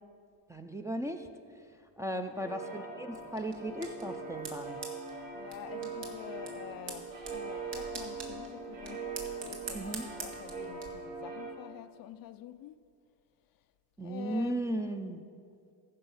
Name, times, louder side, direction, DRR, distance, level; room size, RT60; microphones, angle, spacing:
voice 1, 0.5-1.3 2.0-4.8 9.7-10.1 14.0-15.2, right 1 dB, 5° right, 0.4 m, -36 dB
voice 2, 2.1-2.5 5.3-12.8 13.5-13.7 14.0-15.1, left 12 dB, 50° left, 0.4 m, -47 dB
sound 1, 2.3-11.5, right 4 dB, 45° right, 2.6 m, -41 dB
sound 2, 3.1-10.9, right 5 dB, 65° right, 1.9 m, -46 dB
14.0 x 5.4 x 5.5 m
supercardioid pair, 85°, 48 cm